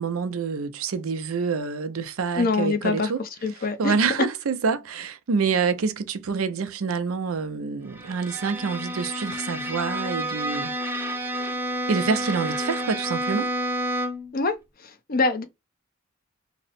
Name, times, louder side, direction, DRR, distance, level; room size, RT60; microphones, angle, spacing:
voice 1, 0.0-3.2 3.5-10.7 11.1-11.5 11.9-13.5, right 5 dB, 85° right, 0.5 m, -27 dB
voice 2, 2.4-3.1 3.4-3.9 14.3-14.6 14.8-15.4, left 3 dB, 45° left, 0.6 m, -24 dB
Bowed string instrument, 7.9-14.4, equal, 10° right, 0.6 m, -30 dB
2.9 x 2.1 x 4.0 m
head